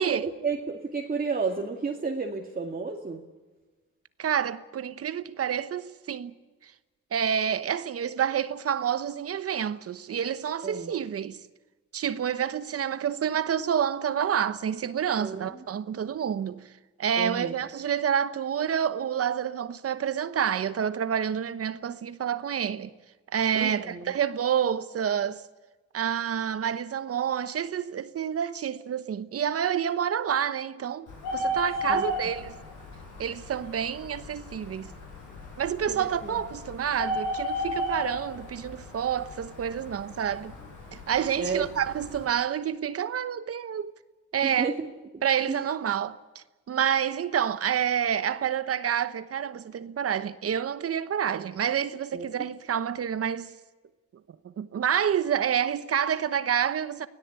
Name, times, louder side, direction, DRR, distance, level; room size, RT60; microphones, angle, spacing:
voice 1, 0.0-3.2 10.6-10.9 15.2-15.5 17.2-17.5 23.5-24.1 31.9-32.0 35.9-36.3 41.4-41.7 44.4-44.9 45.1-45.2 45.5-45.7 52.1-52.5, right 4 dB, 30° right, 2.3 m, -32 dB
voice 2, 4.2-6.3 6.6-6.7 7.1-11.4 11.9-16.6 17.0-22.9 23.3-25.4 25.9-31.1 31.3-32.6 33.2-34.9 35.6-40.5 40.9-43.9 44.3-44.7 45.2-53.5 54.6-57.1, right 8 dB, 50° right, 1.0 m, -28 dB
Bird, 31.1-42.2, left 1 dB, 90° left, 7.5 m, -35 dB
25.0 x 17.0 x 8.2 m
cardioid pair, 90°, 30 cm